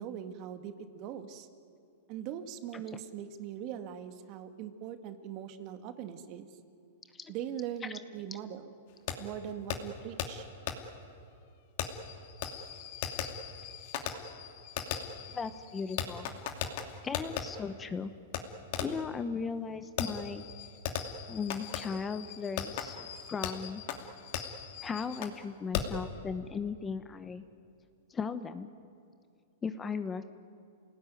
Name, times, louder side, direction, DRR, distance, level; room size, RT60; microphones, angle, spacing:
voice 1, 0.0-1.5 2.1-6.5 7.3-8.7 9.2-10.5, right 9 dB, 40° right, 8 dB, 2.0 m, -41 dB
Fireworks, 9.1-9.2 9.7-9.8 10.2-10.3 10.7-10.8 11.8-17.4 18.3-18.4 18.7-19.1 20.0-25.4 25.7-26.0, left 9 dB, 55° left, 2.6 m, -38 dB
voice 2, 15.3-16.3 17.0-18.1 18.8-20.4 21.3-23.8 24.8-27.4 28.1-28.7 29.6-30.2, left 5 dB, 15° left, 11 dB, 1.0 m, -37 dB
28.5 x 18.5 x 9.3 m, 2.4 s
hypercardioid pair, 140°, 0 cm